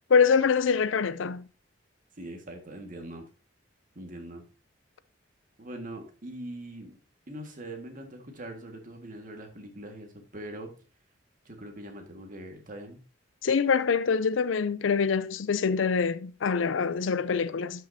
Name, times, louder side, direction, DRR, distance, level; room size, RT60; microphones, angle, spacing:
voice 1, 0.1-1.4 13.4-17.9, left 5 dB, 85° left, 0.5 m, -25 dB
voice 2, 2.2-3.2 4.0-4.4 5.6-6.9 7.3-10.7 11.5-13.0, right 1 dB, 45° right, 1.8 m, -42 dB
12.5 x 5.8 x 2.7 m
head